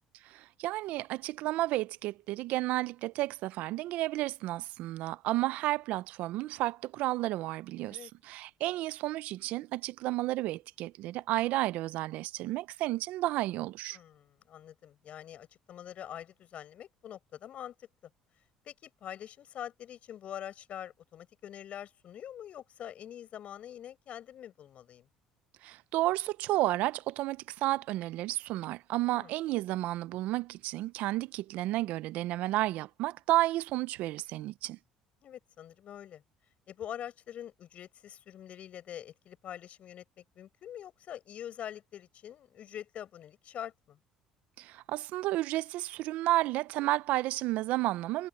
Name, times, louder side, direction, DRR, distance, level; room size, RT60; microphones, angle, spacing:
voice 1, 0.2-14.0 25.6-34.8 44.6-48.3, right 17 dB, 70° right, 0.7 m, -32 dB
voice 2, 13.9-17.7 18.7-25.1 29.1-29.3 35.2-36.2 36.7-44.0, left 10 dB, 55° left, 7.1 m, -45 dB
supercardioid pair, 75°, 3 cm